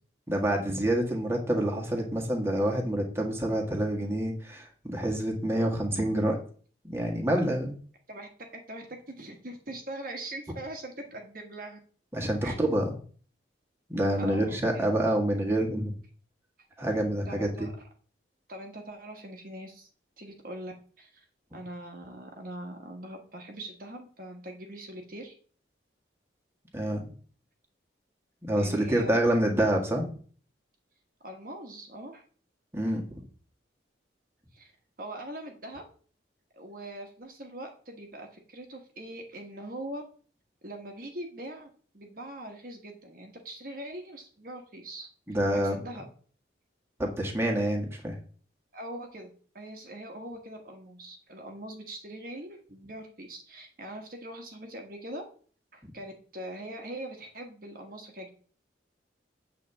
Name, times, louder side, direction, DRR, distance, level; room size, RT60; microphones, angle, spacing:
voice 1, 0.3-6.4 6.8-7.7 12.1-12.9 13.9-15.9 16.8-17.7 26.7-27.0 28.4-30.0 32.7-33.2 45.3-45.8 47.0-48.2 55.8-55.9, right 1 dB, 15° right, 0 dB, 1.7 m, -27 dB
voice 2, 8.7-11.8 12.4-12.9 14.1-14.8 16.8-17.7 18.5-19.9 20.2-21.2 21.5-25.3 28.6-29.2 31.2-32.2 34.5-34.7 35.0-35.9 36.5-40.0 40.6-41.7 41.9-45.1 45.5-46.1 48.7-49.3 49.5-55.2 55.7-58.3, right 1 dB, 50° right, 3 dB, 1.4 m, -42 dB
8.5 x 4.2 x 6.9 m, 0.43 s
head